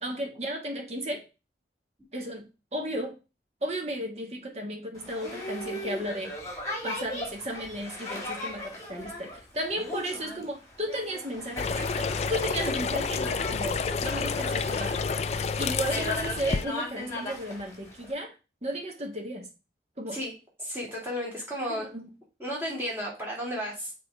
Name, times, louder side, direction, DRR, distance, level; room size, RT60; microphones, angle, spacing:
voice 1, 0.0-1.2 2.1-2.4 2.7-3.1 3.6-6.3 6.8-11.7 12.3-14.9 15.6-18.3 18.6-19.5 20.0-20.2 21.7-22.1, equal, 35° right, 1.5 m, -34 dB
Boat Water vehicle, 5.0-18.1, left 1 dB, 20° left, 2.0 m, -38 dB
sound 1, 11.6-16.7, left 5 dB, 35° left, 0.3 m, -29 dB
voice 2, 20.6-21.9 22.4-23.9, equal, 10° right, 2.7 m, -33 dB
6.8 x 3.8 x 4.9 m
head